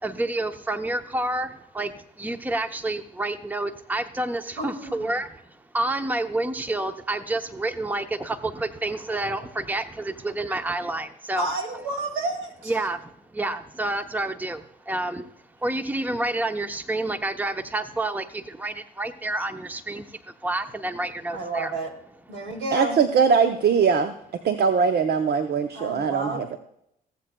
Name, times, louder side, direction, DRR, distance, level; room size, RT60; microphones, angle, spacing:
voice 1, 0.0-11.5 12.7-15.3 15.6-21.7, right 2 dB, 10° right, 9 dB, 0.7 m, -29 dB
voice 2, 4.6-5.1 11.4-12.7 21.3-21.9 22.3-23.0 25.7-26.6, right 2 dB, 80° right, 2 dB, 2.3 m, -30 dB
voice 3, 22.7-24.1 24.4-26.5, right 6 dB, 55° right, 8 dB, 0.7 m, -21 dB
19.0 x 7.7 x 2.3 m, 0.76 s
supercardioid pair, 60°, 19 cm